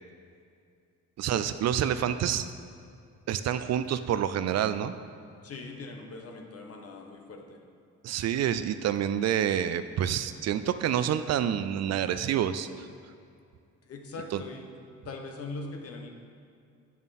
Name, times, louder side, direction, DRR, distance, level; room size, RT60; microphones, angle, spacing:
voice 1, 1.2-2.5 3.3-4.9 8.0-12.9 14.3-14.4, right 10 dB, 60° right, 12 dB, 0.4 m, -28 dB
voice 2, 5.4-7.6 13.9-14.7 15.0-16.1, left 3 dB, 50° left, 3 dB, 1.2 m, -41 dB
8.7 x 7.1 x 4.2 m, 2.4 s
cardioid pair, 90°, 30 cm